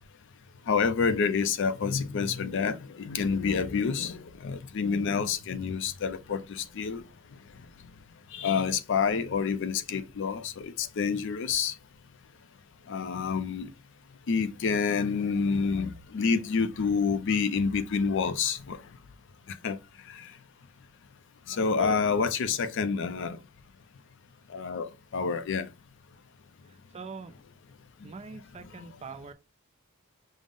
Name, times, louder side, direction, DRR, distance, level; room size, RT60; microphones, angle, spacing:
voice 1, 0.7-7.0 8.3-11.8 12.9-13.7 14.3-18.8 19.5-19.8 20.1-20.3 21.5-23.4 24.5-25.7 28.8-28.9, left 5 dB, 55° left, 0.4 m, -28 dB
voice 2, 21.5-22.1 26.7-27.4 28.0-29.3, right 3 dB, 30° right, 0.3 m, -43 dB
5.2 x 2.0 x 3.5 m
head